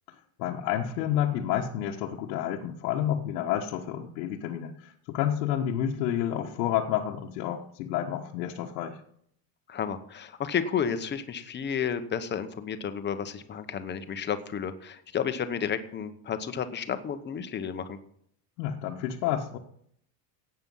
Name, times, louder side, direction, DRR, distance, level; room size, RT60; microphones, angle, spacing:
voice 1, 0.4-9.0 18.6-19.6, left 10 dB, 90° left, -1 dB, 1.5 m, -30 dB
voice 2, 9.7-18.0, left 7 dB, 20° left, 10 dB, 1.0 m, -32 dB
16.5 x 8.9 x 5.6 m, 0.67 s
cardioid pair, 150°, 48 cm